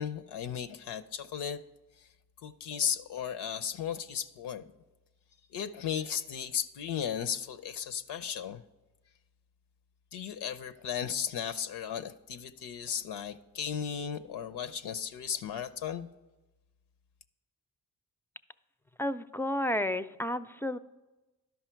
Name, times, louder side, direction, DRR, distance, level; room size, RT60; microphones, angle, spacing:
voice 1, 0.0-1.6 2.0-2.1 2.4-4.6 5.5-8.6 10.1-16.1, left 8 dB, 80° left, 0.5 m, -35 dB
voice 2, 19.0-20.8, left 1 dB, 5° left, 0.3 m, -31 dB
11.5 x 5.5 x 4.5 m
supercardioid pair, 40°, 40 cm